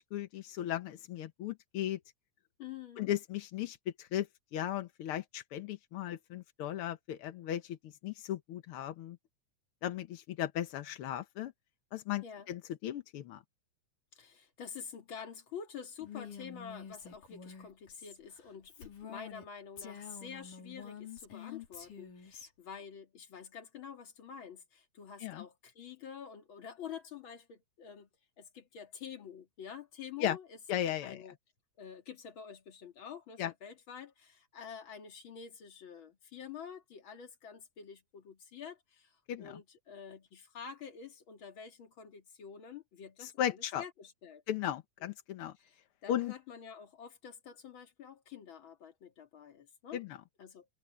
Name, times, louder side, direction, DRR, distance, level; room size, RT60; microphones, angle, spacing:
voice 1, 0.0-2.0 3.0-4.3 4.5-9.2 9.8-11.5 11.9-13.4 25.2-25.4 30.2-30.4 30.7-31.2 33.4-33.5 39.3-39.6 43.2-43.8 44.5-45.5 46.1-46.3 49.9-50.2, left 11 dB, 65° left, 1.4 m, -36 dB
voice 2, 2.6-3.1 12.2-12.5 14.1-28.1 28.4-30.6 31.0-31.3 31.8-44.4 45.0-45.1 45.6-50.0 50.4-50.7, left 7 dB, 45° left, 2.5 m, -48 dB
Female speech woman speaking, 16.0-19.5 19.8-22.5, left 7 dB, 85° left, 6.0 m, -48 dB
omnidirectional pair, 3.6 m